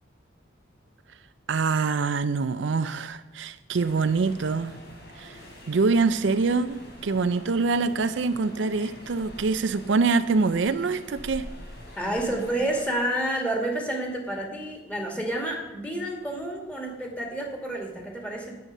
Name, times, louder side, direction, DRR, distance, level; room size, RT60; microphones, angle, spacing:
voice 1, 1.5-4.7 5.2-5.4 5.7-11.5, right 4 dB, 65° right, 11 dB, 0.5 m, -25 dB
sound 1, 3.7-12.8, equal, 55° left, 3.4 m, -45 dB
voice 2, 12.0-18.5, right 1 dB, 5° left, 1 dB, 2.3 m, -29 dB
10.0 x 9.3 x 6.6 m, 1.1 s
head